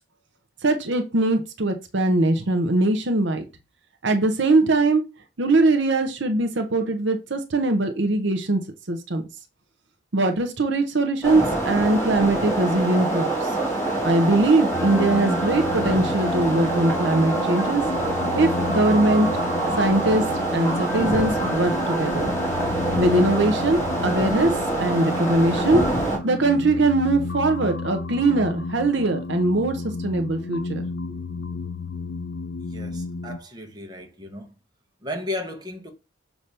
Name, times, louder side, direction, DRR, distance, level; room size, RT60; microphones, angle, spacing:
voice 1, 0.6-3.4 4.0-5.0 5.4-9.2 10.1-13.5 14.0-17.8 18.3-19.3 19.8-20.2 20.5-22.3 23.0-24.5 24.8-25.8 26.2-30.9, right 2 dB, 60° right, 0.8 m, -21 dB
sound 1, 11.2-26.2, right 2 dB, 15° left, 2.2 m, -25 dB
sound 2, 14.7-33.4, left 3 dB, 55° left, 0.5 m, -32 dB
voice 2, 32.6-34.5 35.0-35.9, left 1 dB, 20° right, 1.2 m, -34 dB
6.6 x 3.0 x 5.5 m
head